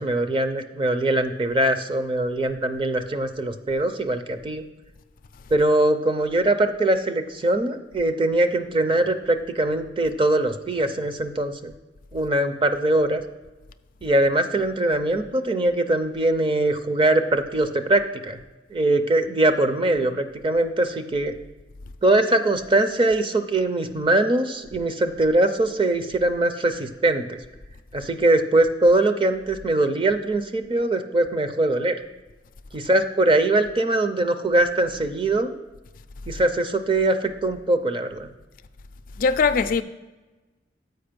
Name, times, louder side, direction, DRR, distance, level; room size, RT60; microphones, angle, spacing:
voice 1, 0.0-4.6 5.5-11.7 12.1-13.2 14.0-18.4 18.7-21.3 22.0-27.4 27.9-31.9 32.7-35.5 36.3-38.3, right 2 dB, 30° right, 0.5 m, -22 dB
voice 2, 39.2-39.8, left 5 dB, 50° left, 0.4 m, -20 dB
7.7 x 5.1 x 5.1 m
head